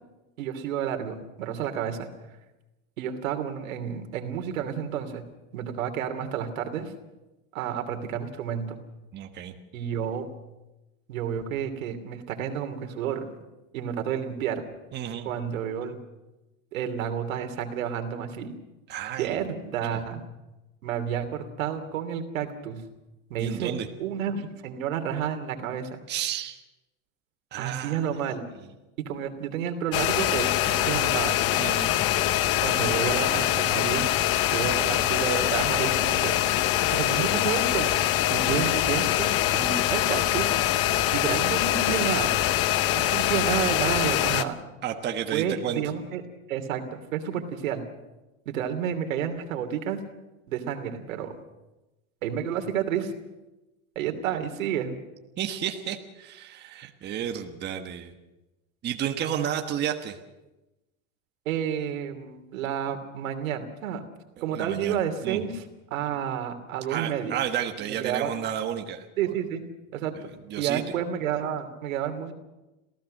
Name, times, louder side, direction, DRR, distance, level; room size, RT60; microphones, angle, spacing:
voice 1, 0.4-2.1 3.0-5.2 5.5-6.9 7.5-8.8 9.7-10.3 11.1-13.3 13.7-14.6 15.2-16.0 16.7-18.5 19.2-20.2 20.8-22.8 23.3-23.7 24.0-26.0 27.6-28.4 29.0-31.4 32.6-34.1 34.5-36.3 36.9-37.9 38.3-40.5 41.1-42.4 42.9-44.5 45.3-46.2 46.5-47.8 48.5-50.0 50.5-51.3 52.2-53.1 53.9-55.0 61.4-64.0 64.4-65.6 65.9-67.4 67.8-68.3 69.2-69.6 69.9-70.2 70.6-72.3, right 8 dB, 90° right, 7 dB, 3.0 m, -30 dB
voice 2, 9.1-9.5 14.9-15.3 18.9-19.4 19.9-20.0 23.4-23.9 26.1-26.6 27.5-28.0 31.6-31.9 44.8-45.8 55.4-58.1 58.8-60.2 64.5-65.0 65.2-65.5 66.9-69.3 70.5-71.0, right 9 dB, 25° right, 5 dB, 1.4 m, -32 dB
sound 1, 29.9-44.4, left 13 dB, 35° left, 0.9 m, -24 dB
27.0 x 16.0 x 6.5 m, 1.0 s
supercardioid pair, 150°, 39 cm